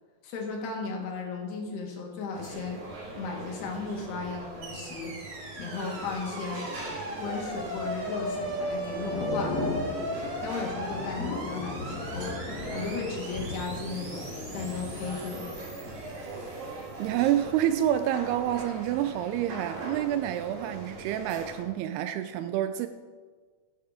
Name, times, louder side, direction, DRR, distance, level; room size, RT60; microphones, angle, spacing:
voice 1, 0.2-2.8 3.2-5.1 5.6-6.7 7.2-9.7 10.4-12.4 12.7-15.7, left 5 dB, 85° left, 0 dB, 3.8 m, -35 dB
sound 1, 2.3-21.6, right 2 dB, 60° right, 4.4 m, -41 dB
sound 2, 4.6-16.9, right 1 dB, 35° right, 3.1 m, -38 dB
Thunder / Rain, 7.3-17.2 17.6-17.8, left 3 dB, 50° left, 1.1 m, -38 dB
voice 2, 17.0-22.9, right 11 dB, 85° right, 9 dB, 2.5 m, -28 dB
15.5 x 8.6 x 5.0 m, 1.5 s
omnidirectional pair, 4.6 m